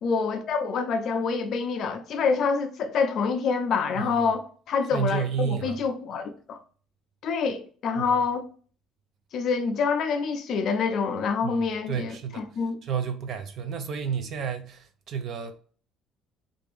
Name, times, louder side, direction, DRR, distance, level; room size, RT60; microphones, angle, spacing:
voice 1, 0.0-6.6 7.2-8.5 9.3-12.8, left 5 dB, 40° left, 0.5 m, -26 dB
voice 2, 4.0-4.3 4.9-5.8 8.0-8.2 11.4-12.4 12.8-15.6, right 7 dB, 40° right, 0.4 m, -31 dB
3.4 x 2.5 x 3.3 m
cardioid pair, 175°, 0 cm